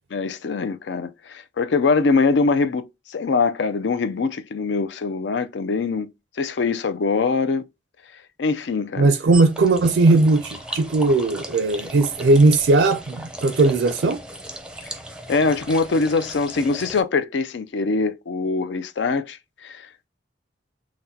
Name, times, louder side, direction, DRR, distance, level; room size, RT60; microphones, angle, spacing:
voice 1, 0.1-6.1 6.4-7.6 8.4-9.1 15.3-20.1, left 4 dB, 70° left, 0.4 m, -23 dB
voice 2, 9.0-14.2, right 3 dB, 70° right, 0.4 m, -18 dB
sound 1, 9.3-17.0, right 1 dB, 5° right, 0.6 m, -37 dB
5.8 x 2.2 x 2.7 m
head